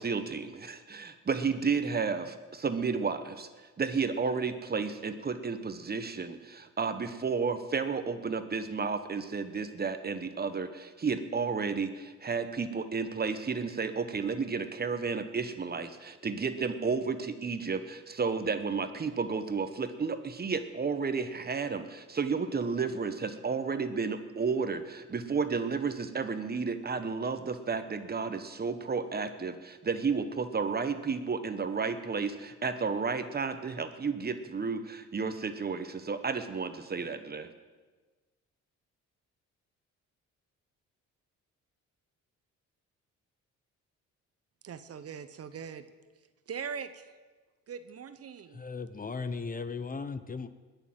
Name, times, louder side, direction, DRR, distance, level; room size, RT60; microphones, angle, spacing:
voice 1, 0.0-3.5 3.8-37.5, right 5 dB, 30° right, 10 dB, 1.3 m, -32 dB
voice 2, 44.6-45.9 46.5-47.1 47.7-48.6, right 7 dB, 50° right, 12 dB, 1.0 m, -41 dB
voice 3, 48.5-50.5, left 4 dB, 30° left, 12 dB, 0.8 m, -37 dB
20.5 x 7.0 x 7.8 m, 1.3 s
cardioid pair, 90°, 30 cm